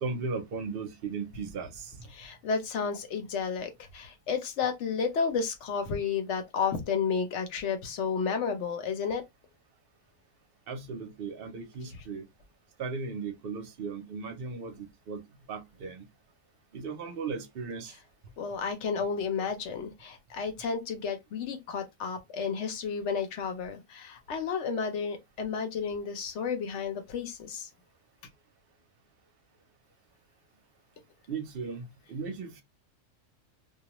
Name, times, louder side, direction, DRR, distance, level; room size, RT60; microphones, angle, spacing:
voice 1, 0.0-2.1 10.7-12.2 12.8-15.2 15.5-16.1 16.7-17.9 31.3-32.6, right 4 dB, 55° right, 0.7 m, -37 dB
voice 2, 2.1-9.2 18.4-27.7, left 5 dB, 65° left, 0.9 m, -32 dB
2.4 x 2.2 x 2.9 m
omnidirectional pair, 1.4 m